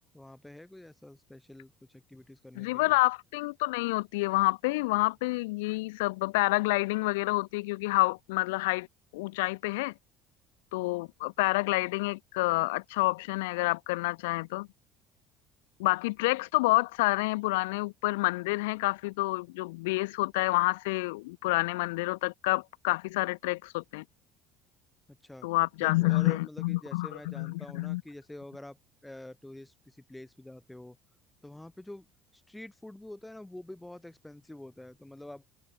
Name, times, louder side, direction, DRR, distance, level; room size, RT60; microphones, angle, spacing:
voice 1, 0.1-3.0 25.1-25.5 25.8-28.8 29.0-31.0 31.4-32.1 32.3-35.4, left 1 dB, 10° left, 4.2 m, -47 dB
voice 2, 2.6-8.9 9.1-9.9 10.7-14.7 15.8-24.0 25.4-28.0, left 23 dB, 85° left, 0.8 m, -28 dB
supercardioid pair, 80°, 0 cm